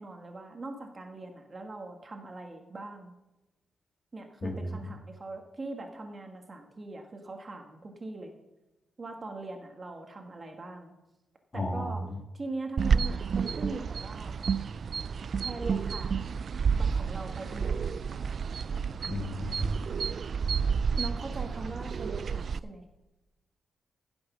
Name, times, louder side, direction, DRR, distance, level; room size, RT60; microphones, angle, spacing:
voice 1, 0.0-3.2 4.1-8.3 9.0-10.9 11.5-12.1 12.3-14.3 15.4-16.3 16.7-18.0 21.0-22.8, right 2 dB, 30° right, 4 dB, 1.6 m, -41 dB
voice 2, 11.5-12.0 19.1-19.8, left 1 dB, 30° left, 2 dB, 1.9 m, -33 dB
sound 1, 12.8-22.6, right 6 dB, 50° right, 0.3 m, -30 dB
16.0 x 6.2 x 6.2 m, 1.0 s
wide cardioid pair, 135°, 0 cm